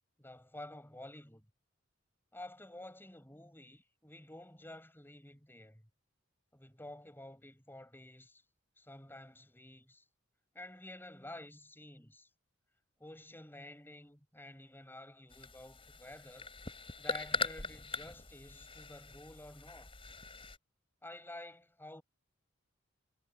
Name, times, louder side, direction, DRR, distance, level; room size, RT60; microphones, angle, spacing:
voice 1, 0.2-1.5 2.3-5.8 6.5-8.4 8.8-10.0 10.5-12.3 13.0-16.5 17.0-19.9 21.0-22.0, left 1 dB, 10° left, 7.9 m, -51 dB
sound 1, 15.3-20.6, left 4 dB, 25° left, 5.6 m, -41 dB
head